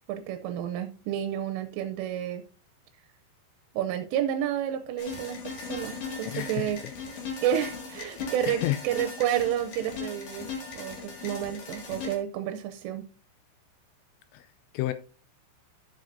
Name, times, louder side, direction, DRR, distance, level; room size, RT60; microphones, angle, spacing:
voice 1, 0.1-2.4 3.7-6.8 7.4-10.5 10.8-13.0, right 10 dB, 85° right, 3.2 m, -30 dB
sound 1, 5.0-12.2, left 5 dB, 50° left, 2.5 m, -38 dB
voice 2, 6.3-6.7 8.5-8.8 14.3-14.5 14.7-14.9, left 17 dB, 85° left, 2.6 m, -30 dB
13.0 x 7.6 x 2.6 m
omnidirectional pair, 5.6 m